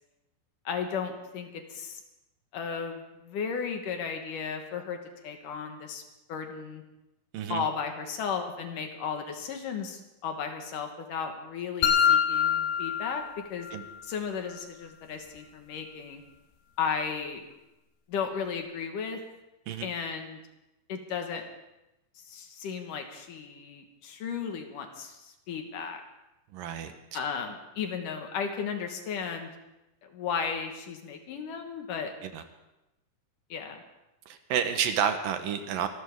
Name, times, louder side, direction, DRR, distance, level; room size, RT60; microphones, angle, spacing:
voice 1, 0.7-2.0 2.5-6.0 6.3-6.8 7.5-13.7 14.0-16.2 16.8-17.4 18.1-19.2 19.8-20.4 20.9-21.4 22.3-26.0 27.1-29.5 30.0-32.1 33.5-33.8, left 6 dB, 70° left, 5 dB, 2.7 m, -35 dB
voice 2, 7.3-7.7 13.7-13.8 19.7-19.9 26.5-27.2 32.2-32.4 34.3-35.9, right 8 dB, 75° right, 8 dB, 2.6 m, -30 dB
sound 1, 11.8-13.8, left 8 dB, 85° left, 2.9 m, -25 dB
25.0 x 13.0 x 3.6 m, 0.96 s
omnidirectional pair, 4.2 m